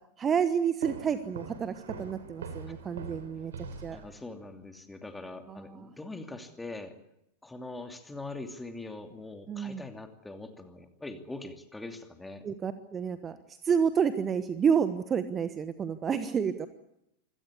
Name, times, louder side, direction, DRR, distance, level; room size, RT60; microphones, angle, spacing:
voice 1, 0.2-1.7 2.0-4.0 5.5-5.9 9.5-9.8 12.4-16.7, right 7 dB, 20° right, 12 dB, 1.2 m, -29 dB
sound 1, 0.8-4.5, right 4 dB, 65° right, 3.3 m, -43 dB
voice 2, 3.9-6.9 7.4-12.4, left 2 dB, 5° left, 6 dB, 2.7 m, -42 dB
25.5 x 17.0 x 8.4 m, 0.81 s
figure-of-eight pair, 90°, 0 cm